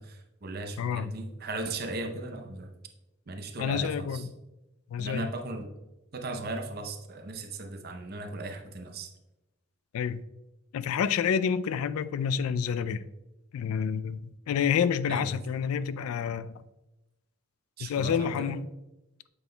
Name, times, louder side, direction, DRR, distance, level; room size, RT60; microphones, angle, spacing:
voice 1, 0.0-2.7 3.3-4.2 5.0-5.7 6.1-9.1 15.1-15.4 17.8-18.6, right 2 dB, 45° right, 0.6 m, -37 dB
voice 2, 0.8-1.1 3.6-4.3 4.9-5.3 9.9-10.2 10.7-13.0 13.5-16.5 17.8-18.7, left 7 dB, 80° left, 0.3 m, -28 dB
8.0 x 5.4 x 2.2 m
head